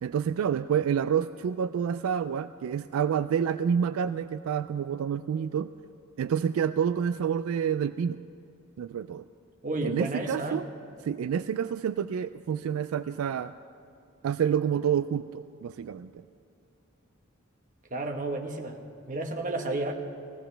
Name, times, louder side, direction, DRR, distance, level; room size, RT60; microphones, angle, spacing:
voice 1, 0.0-5.7 6.2-8.2 8.8-9.2 9.8-10.7 11.0-13.5 14.2-16.1, right 8 dB, 80° right, 12 dB, 0.3 m, -28 dB
voice 2, 9.6-10.6 17.9-18.8 19.1-19.9, right 2 dB, 40° right, 3 dB, 1.1 m, -31 dB
19.5 x 16.5 x 3.4 m, 2.6 s
head